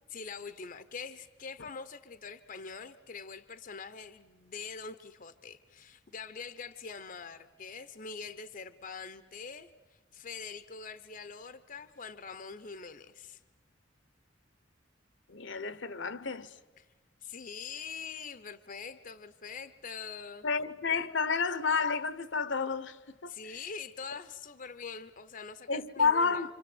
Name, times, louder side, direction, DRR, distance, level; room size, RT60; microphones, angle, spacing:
voice 1, 0.1-9.7 10.1-13.4 16.8-16.9 17.2-20.5 23.3-26.5, left 5 dB, 45° left, 0.8 m, -44 dB
voice 2, 15.3-16.5 20.4-23.4 25.7-26.5, left 5 dB, 70° left, 1.0 m, -30 dB
28.0 x 26.5 x 8.0 m
head